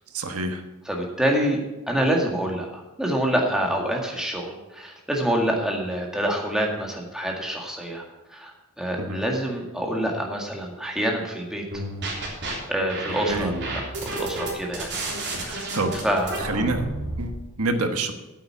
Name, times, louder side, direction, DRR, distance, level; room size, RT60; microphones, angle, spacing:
voice 1, 0.1-0.6 9.0-9.2 13.3-13.5 15.7-16.0 16.4-16.9 17.2-18.1, right 2 dB, 85° right, 6 dB, 1.3 m, -27 dB
voice 2, 0.9-1.6 1.9-8.0 8.3-8.5 8.8-11.6 12.7-15.7 16.0-16.4, right 1 dB, 5° right, 0 dB, 1.9 m, -26 dB
sound 1, 11.7-12.5 12.9-17.3, right 2 dB, 55° right, 3.4 m, -31 dB
9.0 x 8.3 x 7.3 m, 1.0 s
head